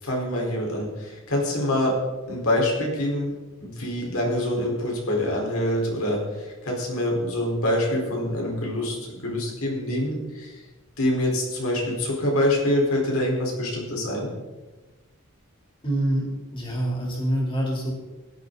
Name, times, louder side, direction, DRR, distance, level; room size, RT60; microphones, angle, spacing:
voice 1, 0.0-1.9 2.3-3.3 3.6-10.6 11.0-14.3, left 1 dB, 85° left, -1 dB, 4.6 m, -25 dB
voice 2, 15.8-16.3 16.5-17.9, right 1 dB, 25° left, -2 dB, 3.8 m, -25 dB
16.5 x 12.0 x 4.1 m, 1.2 s
head